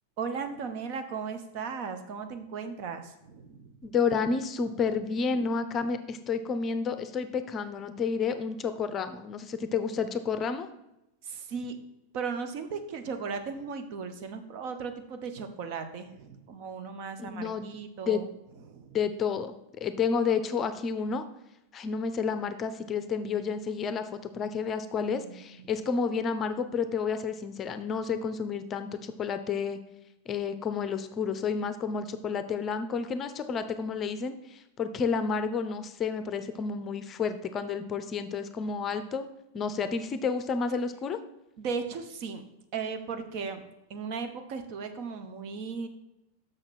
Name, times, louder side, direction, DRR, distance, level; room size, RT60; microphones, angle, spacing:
voice 1, 0.2-3.7 11.2-11.8 12.1-18.3 18.7-18.9 25.2-25.6 41.6-42.4 42.7-43.6 43.9-45.9, right 5 dB, 45° right, 7 dB, 1.0 m, -36 dB
voice 2, 3.8-10.7 17.2-17.7 18.1-18.2 18.9-21.2 21.7-29.8 30.3-39.3 39.5-41.2, left 5 dB, 25° left, 10 dB, 0.6 m, -30 dB
6.5 x 6.4 x 6.3 m, 0.89 s
figure-of-eight pair, 90°, 0 cm